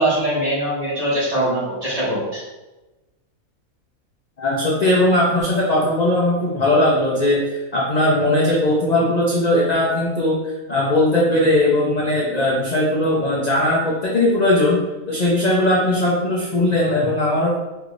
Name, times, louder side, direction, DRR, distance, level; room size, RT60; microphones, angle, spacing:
voice 1, 0.0-2.4, right 1 dB, 25° right, -8 dB, 1.3 m, -22 dB
voice 2, 4.4-10.4 10.7-14.8 15.1-17.6, left 1 dB, 45° left, -5 dB, 0.6 m, -19 dB
4.9 x 3.3 x 2.5 m, 1.1 s
omnidirectional pair, 1.5 m